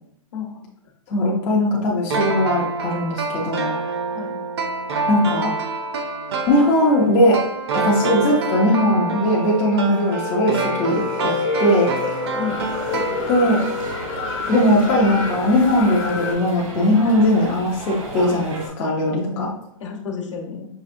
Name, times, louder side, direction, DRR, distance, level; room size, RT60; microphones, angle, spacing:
voice 1, 0.3-0.6 1.2-1.7 4.1-4.3 5.0-5.5 12.3-12.6 19.1-19.4 19.8-20.6, left 6 dB, 60° left, 3 dB, 1.0 m, -31 dB
voice 2, 1.1-3.8 5.1-5.5 6.5-7.4 7.7-11.9 13.3-13.6 14.5-19.5, left 1 dB, 15° left, -4 dB, 0.4 m, -19 dB
sound 1, 2.1-13.7 14.0-14.1, right 3 dB, 50° right, 0.6 m, -27 dB
sound 2, 9.2-16.3, left 4 dB, 35° left, 0.8 m, -28 dB
sound 3, 12.5-18.7, right 3 dB, 75° right, 1.2 m, -35 dB
5.6 x 3.2 x 2.5 m, 0.76 s
hypercardioid pair, 175°, 17 cm